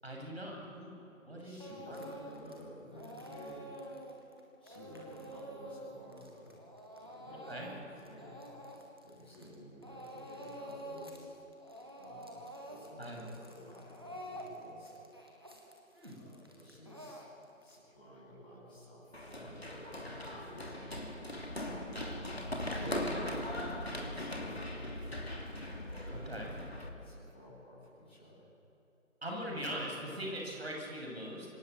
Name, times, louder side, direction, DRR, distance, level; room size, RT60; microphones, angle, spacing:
voice 1, 0.0-1.0 1.3-1.6 1.9-2.0 7.5-7.7 13.0-13.2 15.9-16.2 26.1-26.5 29.2-31.5, equal, 50° right, 0 dB, 8.0 m, -41 dB
voice 2, 1.4-3.8 4.6-6.6 6.9-8.4 9.0-11.3 11.9-15.1 16.1-17.2 17.6-25.3 26.1-26.6 26.8-28.5 29.3-29.7, equal, 10° left, -12 dB, 5.0 m, -53 dB
Speech / Crying sobbing, 1.6-2.6 2.9-9.6 9.8-11.2 11.5-17.7, equal, 20° right, 1.7 m, -48 dB
Run, 19.1-26.9, left 1 dB, 50° left, 3.1 m, -39 dB
26.0 x 20.0 x 8.5 m, 3.0 s
figure-of-eight pair, 170°, 40 cm